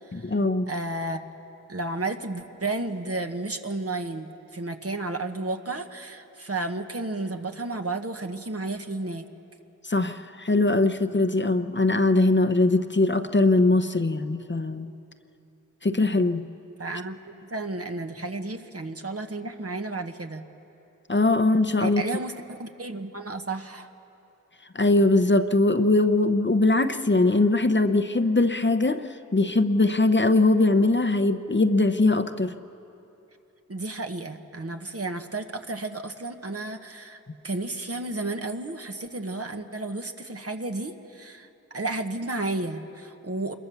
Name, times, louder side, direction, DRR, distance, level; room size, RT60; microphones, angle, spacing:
voice 1, 0.1-0.7 9.8-14.9 15.8-16.5 21.1-22.0 24.7-32.5, left 2 dB, 35° left, 9 dB, 0.8 m, -21 dB
voice 2, 0.7-1.3 1.7-9.3 16.8-17.2 17.5-20.4 21.8-23.9 33.7-43.5, right 2 dB, 50° right, 5 dB, 1.3 m, -32 dB
26.5 x 22.0 x 7.0 m, 2.9 s
wide cardioid pair, 50°, 31 cm